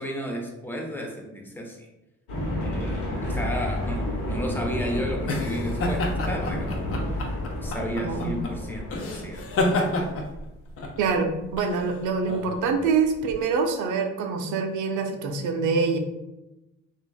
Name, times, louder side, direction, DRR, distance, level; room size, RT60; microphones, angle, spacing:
voice 1, 0.0-1.8 2.6-9.4, equal, 5° left, 1 dB, 0.5 m, -33 dB
sound 1, 2.3-10.3, left 1 dB, 80° left, 1.1 m, -31 dB
sound 2, 4.2-13.4, left 2 dB, 50° left, 0.6 m, -30 dB
voice 2, 8.0-8.4 11.0-16.0, right 5 dB, 80° right, 5 dB, 0.5 m, -25 dB
3.1 x 2.4 x 2.3 m, 0.97 s
cardioid pair, 90°, 30 cm